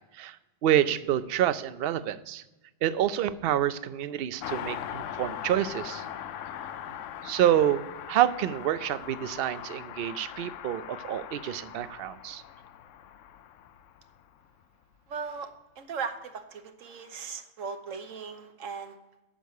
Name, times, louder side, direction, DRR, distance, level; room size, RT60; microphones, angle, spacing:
voice 1, 0.6-2.4 2.8-6.0 7.2-12.4, right 11 dB, 60° right, 14 dB, 0.7 m, -27 dB
Car passing by, 4.4-14.4 14.6-14.7, left 10 dB, 80° left, 0.9 m, -40 dB
voice 2, 15.1-19.0, right 5 dB, 90° right, 8 dB, 1.3 m, -38 dB
9.2 x 6.9 x 6.5 m, 1.1 s
omnidirectional pair, 1.3 m